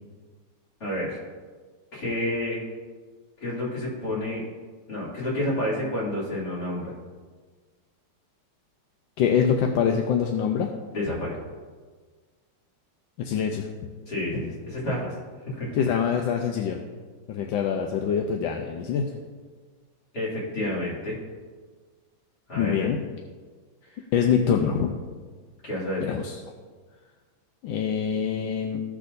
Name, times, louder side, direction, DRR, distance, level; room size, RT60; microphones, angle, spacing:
voice 1, 0.8-1.2 1.9-2.6 3.4-4.4 4.9-6.9 10.9-11.4 14.1-15.1 15.5-15.8 20.1-21.2 22.5-22.9 23.9-24.0 25.6-26.1, left 1 dB, 50° left, -7 dB, 3.3 m, -29 dB
voice 2, 9.2-10.7 13.2-13.7 15.8-16.8 17.3-19.1 22.6-23.0 24.1-25.0 26.1-26.3 27.6-28.8, left 7 dB, 75° left, 3 dB, 1.3 m, -24 dB
16.0 x 6.0 x 2.6 m, 1.5 s
omnidirectional pair, 2.3 m